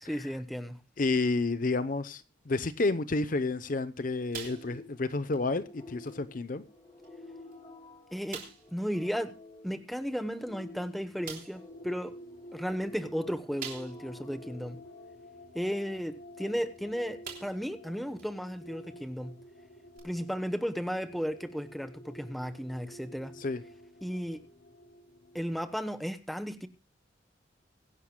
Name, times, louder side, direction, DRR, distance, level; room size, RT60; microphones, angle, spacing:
voice 1, 0.0-0.8 8.1-8.4 8.7-9.3 9.6-12.2 12.5-14.8 15.5-19.5 20.0-23.4 24.0-24.4 25.3-26.7, equal, ahead, 0.9 m, -34 dB
voice 2, 1.0-6.6 23.4-23.6, left 3 dB, 45° left, 0.7 m, -30 dB
sound 1, 4.3-5.0 5.3-5.5 6.1-6.2 7.0-7.1 7.5-7.6 8.3-8.7 10.4-10.5 11.2-11.6 13.6-14.2 14.7-14.8 16.6-16.8 17.2-17.7 18.2-18.3 19.9-20.0, right 6 dB, 50° right, 3.1 m, -43 dB
sound 2, 4.4-15.8, left 2 dB, 30° left, 3.5 m, -52 dB
sound 3, 11.7-25.6, equal, 75° left, 5.3 m, -50 dB
23.5 x 11.0 x 2.2 m
head